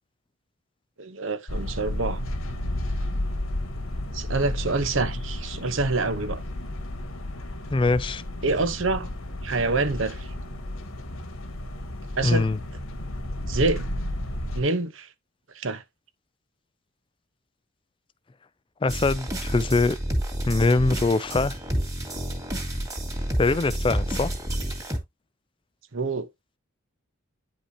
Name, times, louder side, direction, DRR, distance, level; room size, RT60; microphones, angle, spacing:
voice 1, 1.0-2.2 4.1-6.4 8.4-9.1 9.4-10.3 12.2-12.5 13.5-13.9 14.5-15.1 15.5-15.8 25.9-26.3, right 3 dB, 70° right, 1.0 m, -26 dB
sound 1, 1.5-14.6, left 1 dB, 90° left, 1.6 m, -32 dB
voice 2, 7.7-8.2 12.2-12.6 18.8-20.0 20.5-21.5 23.4-24.3, left 3 dB, 25° left, 0.3 m, -22 dB
sound 2, 18.9-25.0, right 1 dB, 15° right, 2.3 m, -29 dB
9.9 x 5.2 x 2.9 m
head